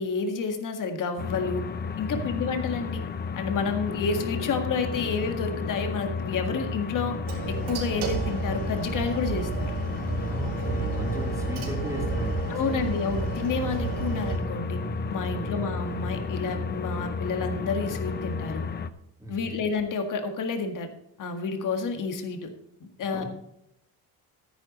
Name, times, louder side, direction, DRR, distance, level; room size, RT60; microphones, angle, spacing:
voice 1, 0.0-1.6 2.0-3.0 3.3-7.2 7.5-9.7 12.5-14.8 15.1-18.7 19.3-20.9 21.2-22.5 23.0-23.2, left 4 dB, 55° left, 6 dB, 1.7 m, -30 dB
sound 1, 1.2-18.9, left 5 dB, 25° left, 0.6 m, -33 dB
voice 2, 2.1-2.4 10.1-12.9 15.3-15.6 19.2-19.6 23.0-23.3, right 2 dB, 10° right, -2 dB, 3.2 m, -37 dB
sound 2, 3.9-18.5, right 1 dB, 90° left, 2.6 m, -40 dB
sound 3, 7.3-14.4, right 6 dB, 80° right, 4.1 m, -33 dB
13.5 x 10.5 x 3.1 m, 0.80 s
cardioid pair, 160°, 39 cm